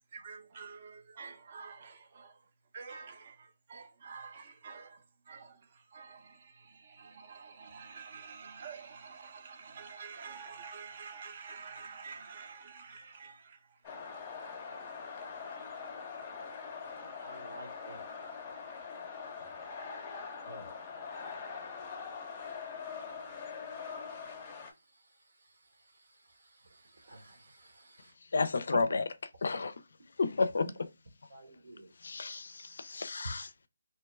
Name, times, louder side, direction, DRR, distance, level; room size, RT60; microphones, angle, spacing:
voice 1, 0.1-2.3 2.7-5.0 5.3-5.6 5.9-13.6, right 5 dB, 35° right, 0.7 m, -48 dB
sound 1, 13.8-24.7, left 5 dB, 20° left, 0.6 m, -43 dB
voice 2, 17.2-18.0 20.5-20.7 27.0-27.7 28.7-28.8 31.3-31.9, right 1 dB, 70° right, 1.2 m, -45 dB
voice 3, 28.3-29.0 29.4-29.7 30.2-30.7 32.0-33.7, left 4 dB, 60° left, 0.4 m, -31 dB
2.8 x 2.2 x 3.1 m
figure-of-eight pair, 160°, 0 cm